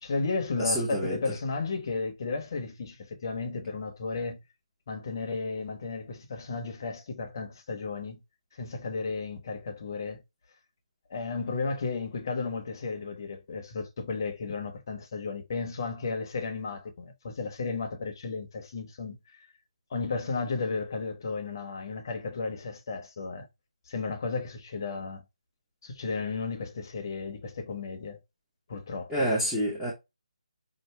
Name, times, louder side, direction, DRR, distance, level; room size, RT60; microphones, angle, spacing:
voice 1, 0.0-4.4 4.9-8.2 8.6-10.2 11.1-19.2 19.9-23.5 23.9-25.2 25.8-28.2 28.7-29.3, left 4 dB, 30° left, 0.8 m, -34 dB
voice 2, 0.6-1.2 29.1-29.9, equal, ahead, 0.8 m, -27 dB
5.5 x 2.6 x 3.1 m
hypercardioid pair, 175°, 4 cm